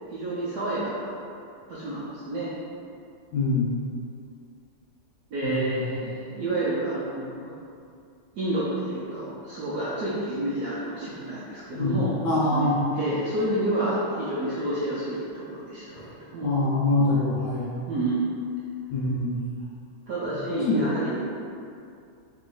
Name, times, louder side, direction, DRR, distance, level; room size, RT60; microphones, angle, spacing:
voice 1, 0.1-1.1 1.7-2.5 5.3-7.5 8.4-12.1 12.5-12.7 13.0-16.6 17.9-18.3 20.1-21.2, right 1 dB, 70° right, -8 dB, 0.9 m, -29 dB
voice 2, 3.3-3.7 5.4-6.0 11.7-12.8 16.0-16.1 16.4-17.7 18.9-19.4 20.2-20.9, left 2 dB, 75° left, -5 dB, 1.1 m, -25 dB
3.2 x 3.0 x 3.8 m, 2.4 s
omnidirectional pair, 2.2 m